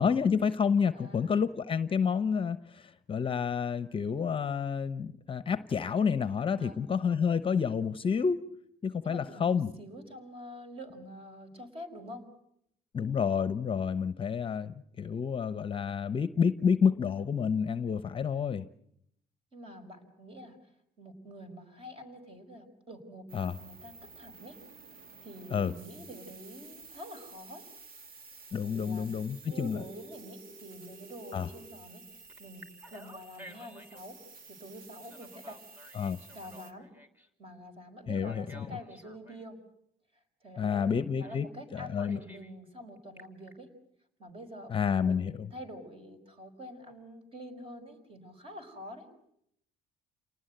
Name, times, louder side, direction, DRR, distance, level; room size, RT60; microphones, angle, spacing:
voice 1, 0.0-8.4 8.8-9.7 12.9-18.7 23.3-23.6 25.5-25.7 28.5-29.8 31.3-31.5 35.9-36.2 38.1-38.8 40.6-41.5 41.7-42.2 44.7-45.3, left 6 dB, 30° left, 14 dB, 0.9 m, -29 dB
voice 2, 0.9-1.4 6.6-6.8 9.0-12.3 19.5-20.7 21.0-24.6 25.2-27.7 28.6-29.1 29.5-35.6 36.3-36.9 37.4-39.6 40.4-43.7 44.2-49.1, equal, 30° right, 7 dB, 5.5 m, -47 dB
sound 1, 23.3-36.7, right 4 dB, 55° right, 2.1 m, -52 dB
Telephone, 29.5-31.7 32.3-34.0 35.0-37.3 38.1-39.4 41.2-41.4 41.7-42.5 43.0-43.5, equal, 10° right, 3.1 m, -53 dB
28.5 x 19.0 x 8.0 m, 0.72 s
cardioid pair, 110°, 17 cm